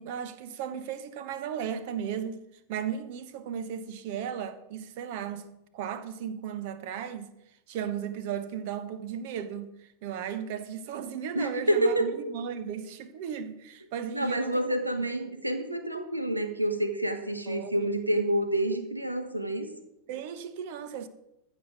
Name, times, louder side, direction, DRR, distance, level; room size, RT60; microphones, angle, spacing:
voice 1, 0.0-2.4 2.7-5.5 5.7-7.3 7.7-9.7 10.0-14.7 17.5-17.9 20.1-21.1, right 8 dB, 50° right, 1.1 m, -35 dB
voice 2, 11.3-12.3 14.1-19.7, right 1 dB, 85° right, 1.4 m, -28 dB
14.5 x 5.5 x 6.5 m
figure-of-eight pair, 90°, 0 cm